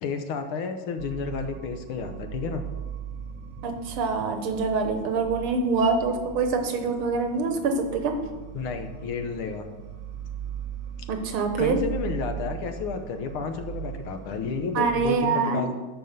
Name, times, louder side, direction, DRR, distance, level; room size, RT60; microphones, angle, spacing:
voice 1, 0.0-2.6 8.5-9.7 11.6-15.7, left 5 dB, 85° left, 7 dB, 1.8 m, -31 dB
sound 1, 1.0-15.1, right 8 dB, 65° right, 0.8 m, -38 dB
voice 2, 3.6-8.2 11.1-11.8 14.8-15.6, right 4 dB, 85° right, 6 dB, 1.9 m, -25 dB
11.0 x 4.8 x 6.7 m, 1.2 s
omnidirectional pair, 2.3 m